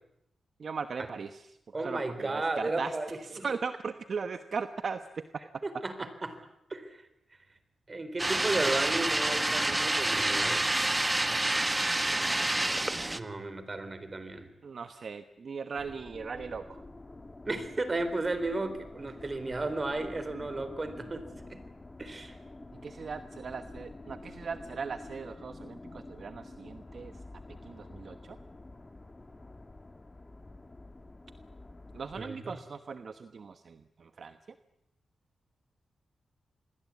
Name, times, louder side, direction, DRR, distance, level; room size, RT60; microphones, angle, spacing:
voice 1, 0.6-1.4 1.8-2.9 3.3-5.2 12.1-12.7 14.6-16.8 22.8-27.1 27.6-28.2 31.9-34.4, right 5 dB, 60° right, 9 dB, 1.1 m, -38 dB
voice 2, 1.7-3.5 5.6-6.4 6.7-7.0 7.9-10.7 13.1-14.5 17.4-21.6 22.0-22.3 32.2-32.6, right 2 dB, 30° right, 11 dB, 4.1 m, -34 dB
sound 1, 8.2-13.2, right 1 dB, 15° right, 1.4 m, -28 dB
sound 2, 15.7-32.3, left 2 dB, 25° left, 1.9 m, -48 dB
27.0 x 21.5 x 8.5 m, 0.80 s
cardioid pair, 90°, 0 cm